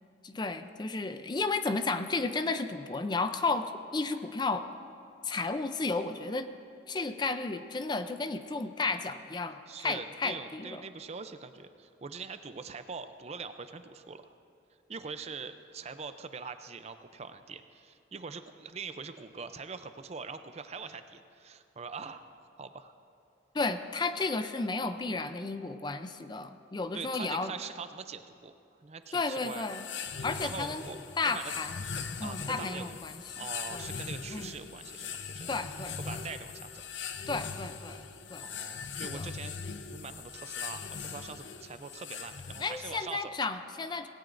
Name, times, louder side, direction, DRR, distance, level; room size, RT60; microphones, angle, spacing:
voice 1, 0.2-4.7 5.2-6.5 6.9-10.8 23.5-27.5 29.1-29.9 30.2-30.8 31.2-31.8 32.2-33.1 33.7-33.9 34.3-34.5 35.5-36.2 37.3-38.0 38.3-38.5 39.0-39.3 42.6-44.1, left 3 dB, 25° left, 10 dB, 0.4 m, -33 dB
voice 2, 9.7-14.3 14.9-22.9 26.9-28.5 28.8-29.7 30.4-31.5 32.0-32.9 33.4-35.5 36.0-36.8 38.4-39.5 39.9-43.3, right 5 dB, 35° right, 10 dB, 0.5 m, -43 dB
sound 1, 29.2-43.0, left 6 dB, 85° left, 0.7 m, -40 dB
18.0 x 16.5 x 2.6 m, 2.7 s
head